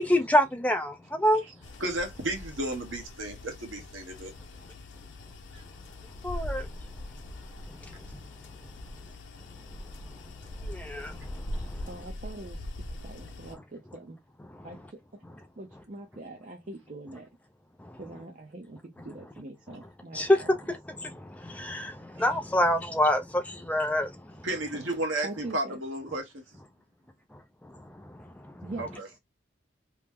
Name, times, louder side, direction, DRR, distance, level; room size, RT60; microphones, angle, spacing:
voice 1, 0.0-1.4 6.2-6.7 7.8-7.9 10.7-11.8 17.9-18.0 20.1-24.2 28.4-28.7, left 1 dB, 5° left, 0.4 m, -27 dB
sound 1, 1.6-13.5, left 1 dB, 80° left, 0.7 m, -41 dB
voice 2, 1.8-4.3 24.4-26.2 28.8-29.1, right 1 dB, 90° right, 1.1 m, -33 dB
voice 3, 11.9-14.2 14.6-15.2 15.6-17.3 18.0-20.5 24.7-24.9 25.2-25.8 28.6-29.2, right 2 dB, 45° right, 0.5 m, -43 dB
3.0 x 2.0 x 3.5 m
head